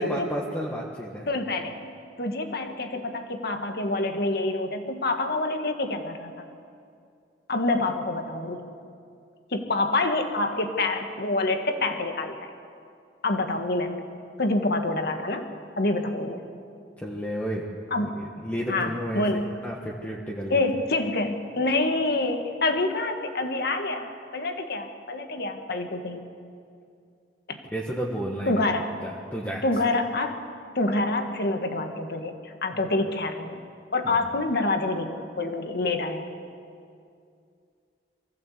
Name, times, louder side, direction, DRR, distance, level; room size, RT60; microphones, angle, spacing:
voice 1, 0.0-1.3 17.0-17.6 18.1-19.2 19.6-20.6 27.7-28.6 29.0-29.6 34.0-34.1, equal, 10° left, -3 dB, 1.6 m, -31 dB
voice 2, 1.3-1.8 2.2-6.3 7.5-8.6 9.5-12.3 13.2-14.1 14.4-15.5 15.8-16.4 17.9-18.1 18.7-19.4 20.5-26.2 27.5-27.6 28.5-28.9 29.6-30.4 30.8-33.6 33.9-36.2, left 2 dB, 65° left, 5 dB, 1.8 m, -27 dB
23.5 x 15.5 x 8.1 m, 2.4 s
head